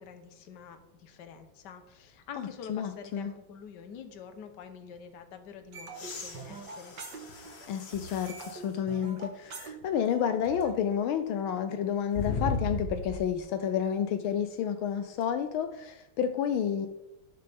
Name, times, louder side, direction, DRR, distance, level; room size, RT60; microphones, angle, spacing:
voice 1, 0.0-7.0, left 6 dB, 60° left, 8 dB, 1.5 m, -47 dB
voice 2, 2.4-3.3 7.7-16.9, left 8 dB, 80° left, 8 dB, 1.5 m, -30 dB
sound 1, 5.7-7.7 7.9-10.7, right 4 dB, 60° right, 2.0 m, -44 dB
sound 2, 5.9-8.7 9.3-9.4 12.1-13.4 15.2-15.3, left 3 dB, 35° left, 1.3 m, -36 dB
18.0 x 6.7 x 3.5 m, 0.93 s
omnidirectional pair, 2.3 m